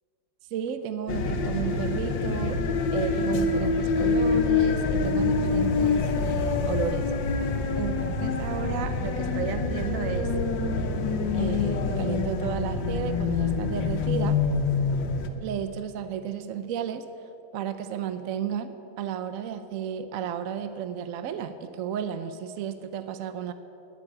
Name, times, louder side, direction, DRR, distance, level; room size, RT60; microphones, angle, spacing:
voice 1, 0.5-2.7 2.9-7.4 7.8-10.3 11.3-14.4 15.4-17.1 17.5-23.5, right 8 dB, 70° right, 10 dB, 0.8 m, -33 dB
sound 1, 1.1-15.3, left 4 dB, 90° left, 1.7 m, -26 dB
10.5 x 10.0 x 7.9 m, 2.7 s
omnidirectional pair, 2.0 m